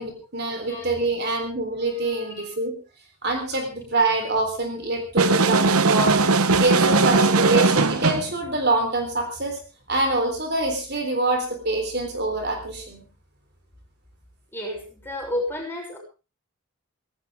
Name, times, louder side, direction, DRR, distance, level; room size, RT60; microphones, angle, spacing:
voice 1, 0.0-2.8 3.2-6.2 6.6-9.6 9.9-13.1, right 2 dB, 45° right, 4 dB, 3.6 m, -25 dB
sound 1, 5.2-8.3, right 3 dB, 75° right, 1.1 m, -19 dB
voice 2, 14.5-16.0, left 1 dB, 10° left, -1 dB, 6.6 m, -31 dB
18.5 x 17.5 x 3.6 m, 0.33 s
head